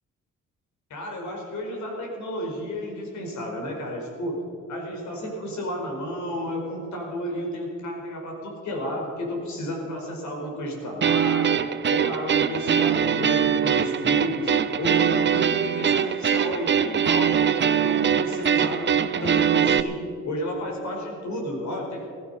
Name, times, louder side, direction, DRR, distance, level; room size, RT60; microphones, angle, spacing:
voice 1, 0.9-14.5 14.8-18.9 19.2-22.1, equal, 70° left, 1 dB, 4.6 m, -32 dB
sound 1, 11.0-19.8, right 8 dB, 40° right, 0.7 m, -22 dB
16.5 x 15.0 x 5.5 m, 2.4 s
cardioid pair, 90°, 30 cm